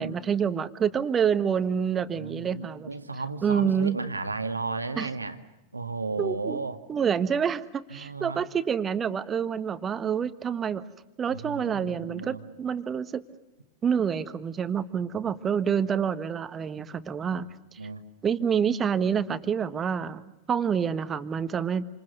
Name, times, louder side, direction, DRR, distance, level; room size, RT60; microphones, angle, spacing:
voice 1, 0.0-2.9 3.4-4.0 5.0-5.1 6.2-10.8 11.2-13.2 13.8-17.8 18.2-21.8, right 7 dB, 20° right, 12 dB, 1.4 m, -27 dB
voice 2, 2.1-5.4 5.7-6.8 7.9-8.5 11.3-12.4 17.3-17.4 17.8-18.0, right 3 dB, 80° right, 9 dB, 1.8 m, -34 dB
28.5 x 27.0 x 6.7 m, 0.98 s
figure-of-eight pair, 90°, 0 cm